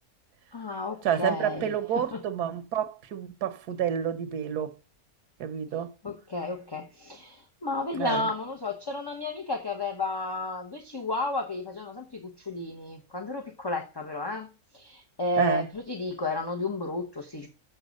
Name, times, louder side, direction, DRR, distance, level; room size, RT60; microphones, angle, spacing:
voice 1, 0.5-2.2 6.0-17.5, left 2 dB, 20° left, 0.8 m, -32 dB
voice 2, 1.0-4.7 5.4-5.9 7.9-8.3 15.4-15.7, right 9 dB, 80° right, 1.4 m, -29 dB
7.0 x 6.7 x 5.2 m
omnidirectional pair, 1.6 m